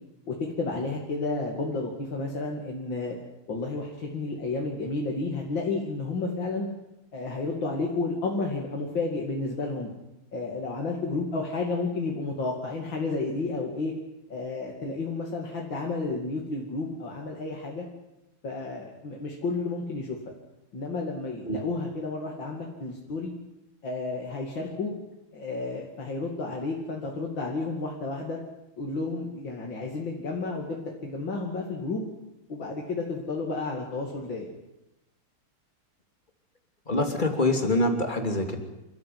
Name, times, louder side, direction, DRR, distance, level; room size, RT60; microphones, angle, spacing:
voice 1, 0.3-3.2 3.5-6.7 7.1-9.9 10.3-13.9 14.3-17.8 18.4-20.2 20.7-23.3 23.8-24.9 25.3-28.4 28.8-32.0 32.5-34.5, left 3 dB, 60° left, -1 dB, 3.3 m, -31 dB
voice 2, 36.9-38.6, left 2 dB, 20° left, 4 dB, 2.9 m, -25 dB
28.5 x 14.0 x 9.5 m, 0.94 s
omnidirectional pair, 2.4 m